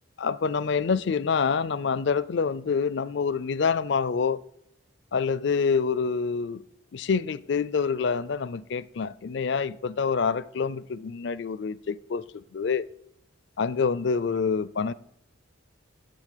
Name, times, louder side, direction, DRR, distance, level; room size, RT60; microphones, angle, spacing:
voice 1, 0.2-4.4 5.1-6.6 6.9-12.8 13.6-14.9, left 5 dB, 55° left, 0.4 m, -26 dB
10.5 x 7.8 x 6.6 m
head